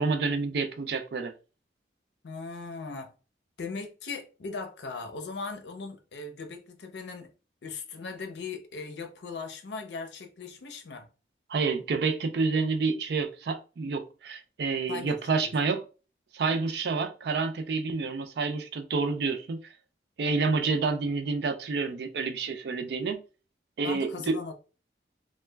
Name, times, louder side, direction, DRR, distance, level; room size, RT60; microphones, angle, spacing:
voice 1, 0.0-1.3 11.5-15.8 16.3-19.7 20.2-23.2 23.8-24.4, right 4 dB, 65° right, 0.3 m, -28 dB
voice 2, 2.2-3.1 3.6-7.3 7.6-11.1 14.9-15.5 23.8-24.5, left 4 dB, 80° left, 0.5 m, -39 dB
2.2 x 2.1 x 3.2 m
head